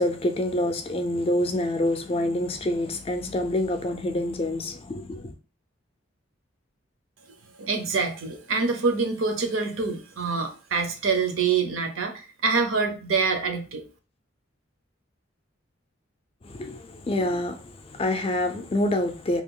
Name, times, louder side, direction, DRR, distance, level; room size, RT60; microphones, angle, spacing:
voice 1, 0.0-5.3 16.4-19.4, left 1 dB, 30° left, 0.4 m, -27 dB
voice 2, 7.6-13.9, right 4 dB, 85° right, 0.7 m, -26 dB
2.8 x 2.3 x 3.6 m
head